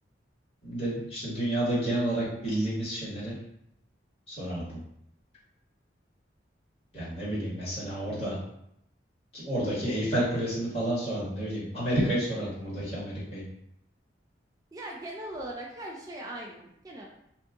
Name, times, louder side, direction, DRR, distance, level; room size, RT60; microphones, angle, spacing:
voice 1, 0.6-3.4 4.3-4.8 6.9-8.4 9.3-13.4, right 1 dB, 30° left, -10 dB, 1.5 m, -30 dB
voice 2, 14.7-17.1, right 1 dB, 20° right, -2 dB, 0.3 m, -39 dB
2.7 x 2.3 x 3.6 m, 0.76 s
head